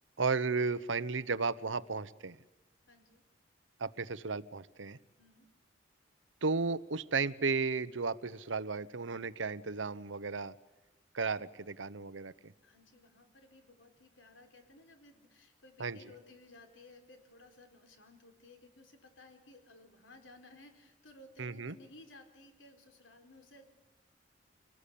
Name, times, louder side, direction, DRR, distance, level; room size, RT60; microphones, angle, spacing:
voice 1, 0.2-2.4 3.8-5.0 6.4-10.5 11.1-12.5 15.8-16.0 21.4-21.8, right 4 dB, 90° right, 16 dB, 1.0 m, -34 dB
voice 2, 2.9-3.2 5.2-5.5 12.6-23.6, left 2 dB, 85° left, 5 dB, 4.4 m, -58 dB
26.0 x 19.5 x 8.5 m, 1.1 s
head